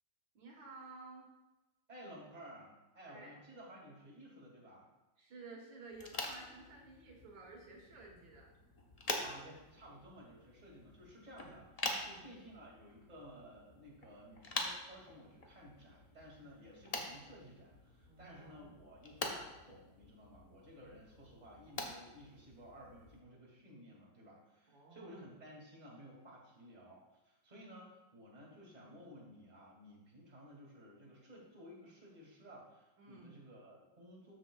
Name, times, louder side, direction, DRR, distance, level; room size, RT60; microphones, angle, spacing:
voice 1, 0.3-1.3 3.0-3.4 5.2-8.5 12.0-12.3 18.1-18.7 24.7-25.2 33.0-33.3, right 3 dB, 85° right, -1 dB, 2.1 m, -54 dB
voice 2, 1.9-4.9 9.2-34.3, equal, 20° right, -4 dB, 2.2 m, -55 dB
sound 1, 5.9-23.2, left 2 dB, 40° left, 0.5 m, -46 dB
13.0 x 6.9 x 2.3 m, 1.1 s
omnidirectional pair, 2.0 m